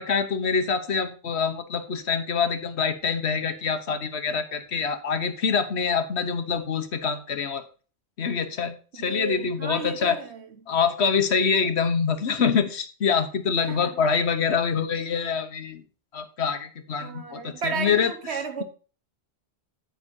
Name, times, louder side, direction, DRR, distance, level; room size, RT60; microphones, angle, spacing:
voice 1, 0.0-7.6 8.2-10.2 10.7-15.8 16.1-18.1, left 6 dB, 85° left, 1.4 m, -25 dB
voice 2, 8.9-10.5 13.6-14.0 17.0-18.6, right 5 dB, 90° right, 1.5 m, -33 dB
9.9 x 9.0 x 2.7 m
omnidirectional pair, 1.1 m